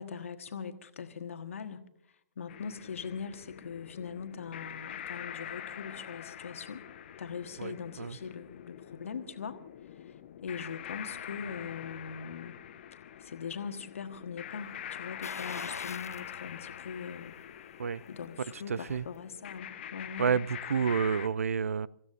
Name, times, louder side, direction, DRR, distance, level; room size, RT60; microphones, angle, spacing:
voice 1, 0.0-1.8 2.4-6.8 7.2-9.6 9.9-12.6 13.2-17.3 18.1-20.4, left 6 dB, 60° left, 1.4 m, -41 dB
sound 1, 2.5-21.3, left 10 dB, 45° left, 1.0 m, -45 dB
voice 2, 7.6-8.2 17.8-18.0 18.7-19.0 20.2-21.9, right 6 dB, 65° right, 0.5 m, -30 dB
sound 2, 15.2-16.3 16.7-16.8 18.3-19.1 19.4-19.5, left 4 dB, 75° left, 0.5 m, -43 dB
29.5 x 15.5 x 2.6 m
figure-of-eight pair, 120°, 8 cm